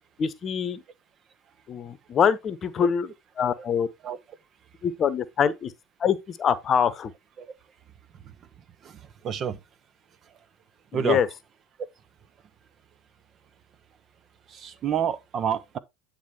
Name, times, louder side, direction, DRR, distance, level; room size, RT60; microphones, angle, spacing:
voice 1, 0.2-0.8 1.7-3.1 3.4-3.9 4.8-5.7 6.0-7.1 10.9-11.3, left 7 dB, 35° left, 1.0 m, -24 dB
voice 2, 9.2-9.6 10.9-11.2 14.5-15.8, right 8 dB, 40° right, 0.9 m, -28 dB
9.5 x 3.6 x 4.6 m
hypercardioid pair, 80°, 0 cm